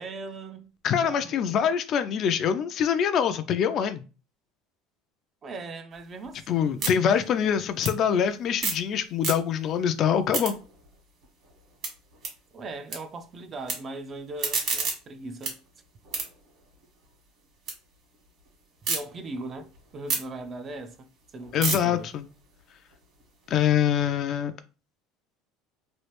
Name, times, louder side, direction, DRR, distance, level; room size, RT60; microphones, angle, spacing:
voice 1, 0.0-0.7 1.0-1.5 5.4-6.9 7.3-7.6 12.5-15.6 18.9-22.1, right 2 dB, 30° right, 0.4 m, -39 dB
voice 2, 0.8-4.0 6.5-10.5 21.5-22.2 23.5-24.5, left 8 dB, 45° left, 0.3 m, -24 dB
sound 1, 5.9-8.9 9.1-9.8 10.1-13.0 13.3-13.7 14.2-17.8 18.1-19.0 19.4-23.6, right 4 dB, 50° right, 1.5 m, -34 dB
3.1 x 2.4 x 3.1 m
supercardioid pair, 125°, 0 cm